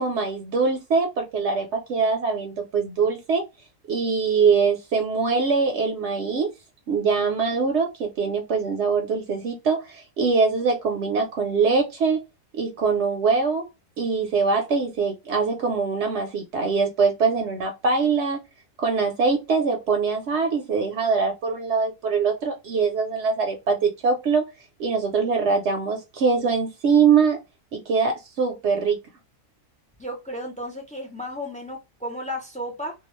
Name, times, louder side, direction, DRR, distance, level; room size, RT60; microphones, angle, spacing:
voice 1, 0.0-3.4 3.9-6.5 6.9-12.2 12.6-13.7 14.0-18.4 18.8-24.4 24.8-27.4 27.7-29.0, right 5 dB, 65° right, 0.8 m, -23 dB
voice 2, 30.0-32.9, equal, 10° left, 0.3 m, -33 dB
2.3 x 2.3 x 3.0 m
omnidirectional pair, 1.3 m